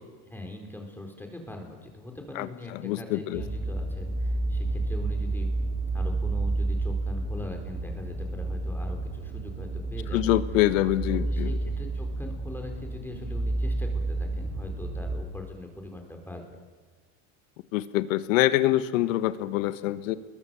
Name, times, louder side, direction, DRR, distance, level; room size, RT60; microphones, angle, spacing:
voice 1, 0.2-5.5 5.9-10.4 11.1-16.6, left 2 dB, 5° left, 3 dB, 4.4 m, -41 dB
voice 2, 2.8-3.4 10.1-11.5 17.7-20.2, left 15 dB, 90° left, 13 dB, 1.4 m, -25 dB
sound 1, 3.3-15.2, right 2 dB, 25° right, 4.7 m, -30 dB
29.0 x 22.0 x 7.1 m, 1.4 s
supercardioid pair, 120°, 38 cm